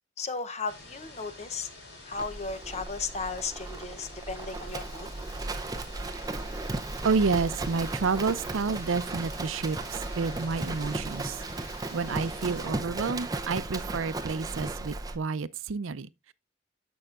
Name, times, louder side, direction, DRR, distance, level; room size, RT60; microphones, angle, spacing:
voice 1, 0.2-1.7 2.0-5.1, left 4 dB, 35° left, 0.7 m, -35 dB
sound 1, 0.7-12.7, left 2 dB, 65° left, 3.9 m, -48 dB
Livestock farm animals working animals, 2.1-15.2, right 2 dB, 20° right, 0.6 m, -36 dB
voice 2, 7.0-11.4 11.9-16.3, right 4 dB, 85° right, 0.5 m, -30 dB
15.0 x 5.5 x 2.4 m
head